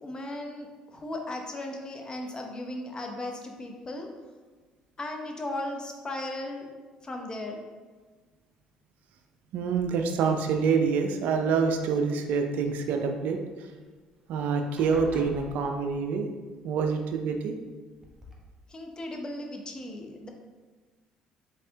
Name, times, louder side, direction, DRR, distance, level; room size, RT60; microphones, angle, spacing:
voice 1, 0.0-4.1 5.0-6.7 7.0-7.6 18.7-20.3, left 1 dB, 30° left, 2 dB, 0.7 m, -36 dB
voice 2, 9.5-13.4 14.3-16.3 16.6-17.5, right 5 dB, 70° right, 5 dB, 0.4 m, -26 dB
sound 1, 9.8-10.3 11.2-12.0 13.8-13.9 14.2-14.4 14.8-16.2 17.3-17.4 18.0-18.3, equal, 15° right, 1.0 m, -46 dB
4.1 x 3.3 x 2.8 m, 1.4 s
hypercardioid pair, 65°, 3 cm